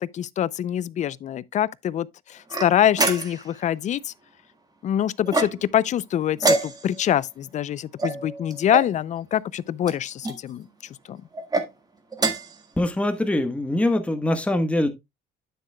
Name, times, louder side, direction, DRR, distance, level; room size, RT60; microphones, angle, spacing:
voice 1, 0.0-4.1 4.8-10.7 11.1-11.2, left 10 dB, 45° left, 0.4 m, -25 dB
sound 1, 2.5-3.6 5.3-5.8 6.4-7.1 8.0-8.9 9.8-10.4 11.3-11.7 12.1-12.6, right 3 dB, 20° right, 1.6 m, -26 dB
voice 2, 12.8-14.9, left 1 dB, 5° left, 1.2 m, -23 dB
9.3 x 7.6 x 2.2 m
cardioid pair, 110°, 17 cm